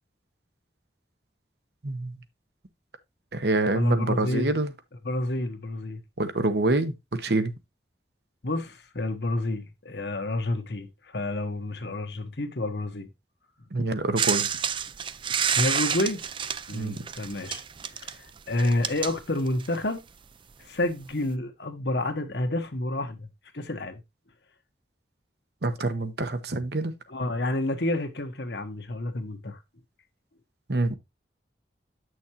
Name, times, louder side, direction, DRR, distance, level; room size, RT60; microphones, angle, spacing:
voice 1, 1.8-2.2 3.3-4.7 6.2-7.5 13.7-14.5 16.7-16.9 25.6-26.9 30.7-31.0, right 2 dB, 65° right, 1.0 m, -26 dB
voice 2, 3.7-4.5 5.0-6.0 8.4-13.1 15.5-16.2 16.7-17.6 17.9-20.0 20.6-23.3 23.5-24.0 27.1-29.6, left 1 dB, 70° left, 1.3 m, -29 dB
sound 1, 14.2-19.9 20.8-20.9, right 8 dB, 30° right, 0.4 m, -29 dB
8.6 x 6.3 x 2.9 m
head